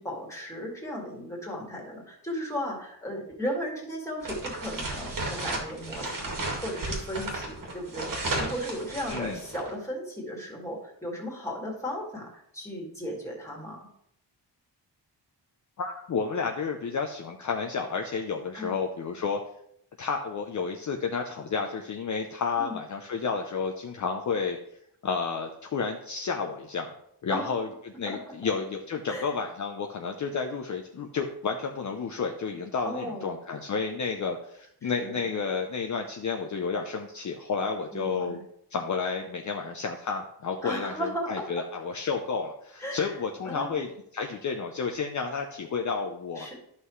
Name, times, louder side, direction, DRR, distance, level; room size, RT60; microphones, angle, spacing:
voice 1, 0.0-13.9 18.5-18.7 22.6-22.8 27.3-27.6 28.1-28.5 29.1-29.3 32.8-33.3 34.8-35.3 37.9-38.4 40.6-41.5 42.8-43.1 43.4-43.8 46.4-46.5, equal, 5° left, -2 dB, 2.2 m, -36 dB
sound 1, 4.2-9.7, right 2 dB, 50° right, 2.0 m, -34 dB
voice 2, 9.1-9.4 15.8-19.4 20.0-24.6 25.0-26.9 27.2-38.4 38.7-46.5, left 5 dB, 45° left, 3 dB, 0.6 m, -31 dB
11.5 x 5.6 x 3.2 m, 0.72 s
wide cardioid pair, 135°, 41 cm